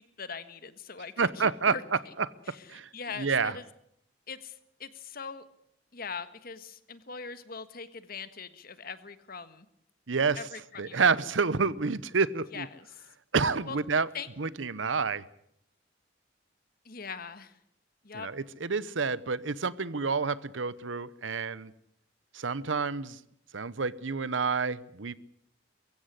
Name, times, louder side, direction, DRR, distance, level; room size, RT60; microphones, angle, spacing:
voice 1, 0.0-1.8 2.5-3.7 4.3-5.4 5.9-9.7 10.4-11.2 12.5-13.1 13.7-13.8 14.1-14.3 16.8-17.6 18.0-18.3, left 5 dB, 50° left, 12 dB, 1.5 m, -41 dB
voice 2, 1.2-1.7 2.5-2.9 3.2-3.6 10.1-10.4 10.8-12.7 13.3-14.1 14.4-15.2 18.1-21.7 22.3-23.2 23.5-25.2, right 5 dB, 75° right, 18 dB, 0.9 m, -29 dB
23.0 x 15.5 x 9.9 m, 0.75 s
head